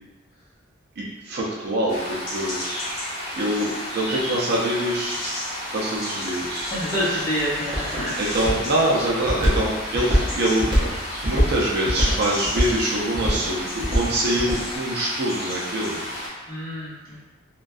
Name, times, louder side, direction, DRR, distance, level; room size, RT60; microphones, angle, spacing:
voice 1, 1.0-2.6 3.4-5.2 5.7-6.7 8.2-10.7 11.2-16.0, right 1 dB, 50° right, -4 dB, 0.4 m, -24 dB
sound 1, 1.9-16.3, equal, 55° left, 0.9 m, -32 dB
Walk footsteps, 6.5-14.6, equal, 25° right, 0.7 m, -24 dB
voice 2, 6.7-8.2 16.5-17.2, equal, 20° left, -12 dB, 1.2 m, -27 dB
2.5 x 2.2 x 2.3 m, 1.2 s
head